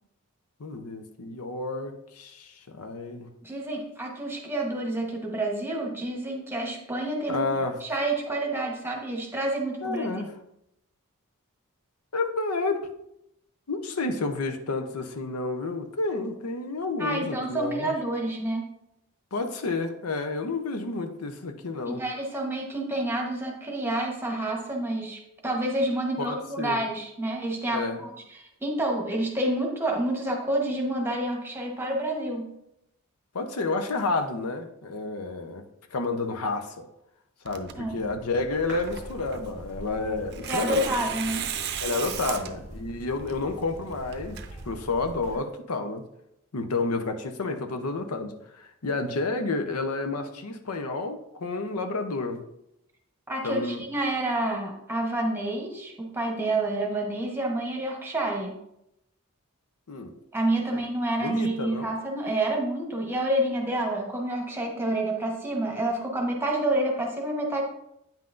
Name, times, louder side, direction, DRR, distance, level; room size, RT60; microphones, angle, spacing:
voice 1, 0.6-3.3 7.3-7.8 9.8-10.3 12.1-12.8 13.7-17.9 19.3-22.0 26.2-26.8 27.7-28.0 33.3-35.6 35.9-36.9 37.4-41.0 41.8-44.4 44.7-46.0 46.5-52.4 53.4-53.8 59.9-60.1 60.7-60.8 61.2-61.9, left 3 dB, 90° left, 7 dB, 0.7 m, -30 dB
voice 2, 3.4-7.5 7.8-10.1 17.0-18.6 21.9-32.5 37.8-38.0 40.5-41.5 42.2-42.4 53.3-58.5 60.3-67.6, right 1 dB, 10° right, 0 dB, 1.0 m, -28 dB
Tearing, 37.5-45.2, right 8 dB, 50° right, 0.5 m, -38 dB
sound 1, 38.5-45.4, equal, 55° left, 2.3 m, -44 dB
8.9 x 5.7 x 2.5 m, 0.81 s
head